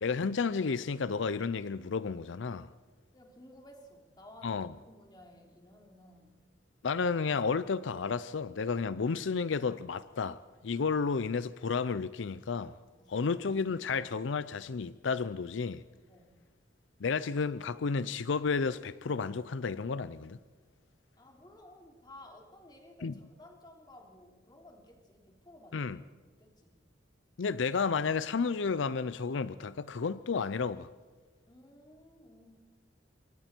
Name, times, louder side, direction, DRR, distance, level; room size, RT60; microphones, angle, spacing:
voice 1, 0.0-2.7 4.4-4.7 6.8-12.8 13.1-15.8 17.0-20.4 23.0-23.1 25.7-26.0 27.4-30.9, left 5 dB, 80° left, 0.5 m, -32 dB
voice 2, 3.1-6.4 13.0-13.3 16.1-16.5 21.2-25.9 26.4-26.8 31.5-32.7, left 1 dB, 20° left, 3.3 m, -55 dB
27.0 x 23.5 x 4.5 m
head